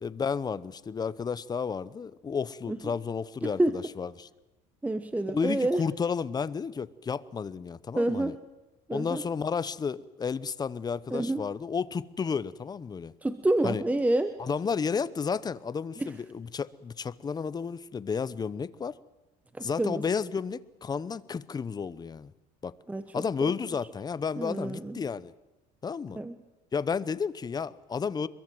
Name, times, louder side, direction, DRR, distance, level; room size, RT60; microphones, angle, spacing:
voice 1, 0.0-4.3 5.3-8.4 8.9-13.1 13.6-13.8 14.4-19.0 19.6-22.3 22.6-22.8 23.1-25.3 25.8-26.2 26.7-28.3, left 6 dB, 25° left, 0.9 m, -32 dB
voice 2, 3.4-3.8 4.8-5.8 8.0-8.4 8.9-9.2 11.1-11.4 13.2-14.3 16.0-16.1 19.6-20.0 22.9-23.0 23.4-23.5 24.4-25.0 26.1-26.3, right 1 dB, 10° right, 1.0 m, -28 dB
25.5 x 22.5 x 7.8 m
cardioid pair, 125°, 17 cm